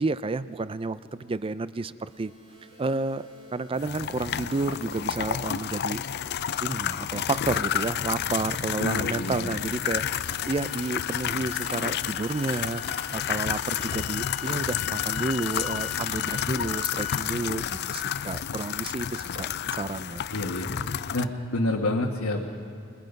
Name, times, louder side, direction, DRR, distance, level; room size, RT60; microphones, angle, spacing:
voice 1, 0.0-2.3 2.8-6.0 6.6-10.0 10.4-19.5 19.8-20.3, right 3 dB, 25° right, 15 dB, 0.5 m, -31 dB
sound 1, 2.1-10.1, right 1 dB, 75° right, 6.0 m, -53 dB
sound 2, 3.8-21.2, left 9 dB, 50° left, 0.4 m, -30 dB
sound 3, 8.1-17.3, left 10 dB, 65° left, 1.9 m, -41 dB
voice 2, 8.8-9.6 19.3-19.5 19.8-19.9 20.3-20.7 21.1-22.4, left 2 dB, 85° left, -1 dB, 1.4 m, -28 dB
29.0 x 20.5 x 5.3 m, 2.5 s
head